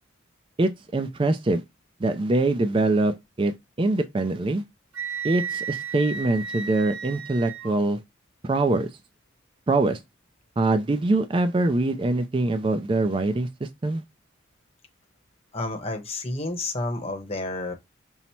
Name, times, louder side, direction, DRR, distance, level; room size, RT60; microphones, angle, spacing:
voice 1, 0.6-1.6 2.0-4.6 5.2-8.0 8.4-8.9 9.7-10.0 10.6-14.0, right 2 dB, 25° right, 0.3 m, -24 dB
Wind instrument woodwind instrument, 4.9-7.7, right 6 dB, 75° right, 0.9 m, -33 dB
voice 2, 15.5-17.7, left 2 dB, 30° left, 0.8 m, -30 dB
5.5 x 2.0 x 4.3 m
head